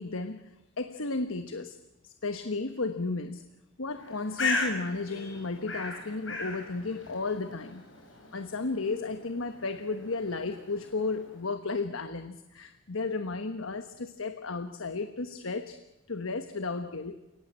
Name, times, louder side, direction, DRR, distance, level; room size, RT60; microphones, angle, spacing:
voice 1, 0.0-1.8 2.0-3.4 3.8-7.8 8.3-15.8 16.1-17.2, left 3 dB, 85° left, 1.2 m, -33 dB
Bird, 3.9-11.5, left 3 dB, 65° left, 6.3 m, -38 dB
29.5 x 18.5 x 7.7 m
head